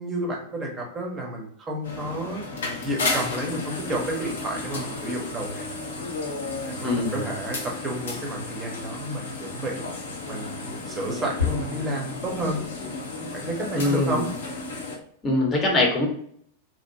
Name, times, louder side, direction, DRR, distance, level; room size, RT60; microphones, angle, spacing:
voice 1, 0.0-2.4 2.8-5.7 6.6-9.8 10.3-12.6 13.3-14.3, right 1 dB, 20° right, 0 dB, 0.8 m, -31 dB
sound 1, 1.8-15.0, left 3 dB, 65° left, 0.6 m, -32 dB
voice 2, 6.8-7.3 13.8-14.2 15.2-16.1, left 2 dB, 25° left, -1 dB, 0.8 m, -23 dB
2.7 x 2.1 x 2.7 m, 0.64 s
figure-of-eight pair, 90°, 0 cm